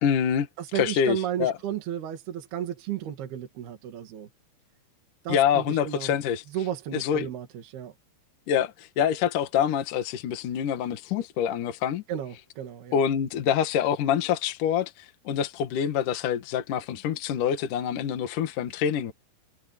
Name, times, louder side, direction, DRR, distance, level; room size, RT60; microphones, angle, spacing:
voice 1, 0.0-0.5 0.7-1.5 5.3-6.4 6.9-7.3 8.5-12.0 12.9-19.1, left 8 dB, 60° left, 3.0 m, -26 dB
voice 2, 0.6-4.3 5.2-6.2 6.5-7.9 12.1-13.0, right 10 dB, 70° right, 4.1 m, -33 dB
omnidirectional pair, 4.7 m